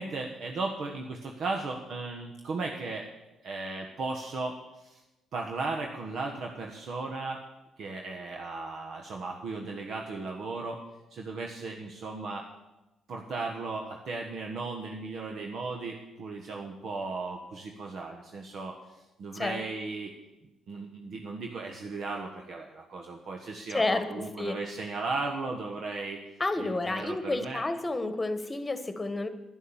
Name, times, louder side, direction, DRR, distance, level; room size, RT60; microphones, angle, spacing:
voice 1, 0.0-3.0 3.4-5.0 5.3-7.4 7.8-10.8 11.1-12.4 13.1-20.1 20.7-26.2 26.6-27.6, right 3 dB, 65° right, 1 dB, 1.3 m, -36 dB
voice 2, 23.7-24.1 24.4-24.6 26.4-29.3, left 2 dB, 20° left, 10 dB, 1.3 m, -30 dB
11.0 x 11.0 x 7.2 m, 1.0 s
cardioid pair, 90°, 0 cm